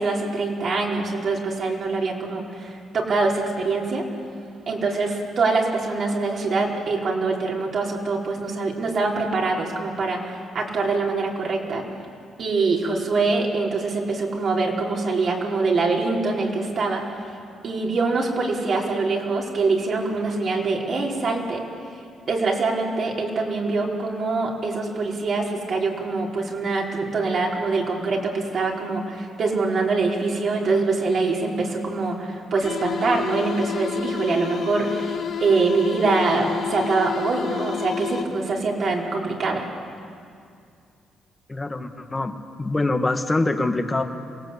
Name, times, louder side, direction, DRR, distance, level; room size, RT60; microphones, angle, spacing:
voice 1, 0.0-4.0 4.7-11.8 12.4-17.0 17.6-21.6 22.3-39.7, right 3 dB, 55° right, -1 dB, 4.6 m, -24 dB
sound 1, 32.6-38.6, left 8 dB, 60° left, 1.8 m, -30 dB
voice 2, 41.5-44.0, left 2 dB, 20° left, 6 dB, 1.9 m, -24 dB
27.5 x 18.5 x 8.4 m, 2.3 s
cardioid pair, 90°, 0 cm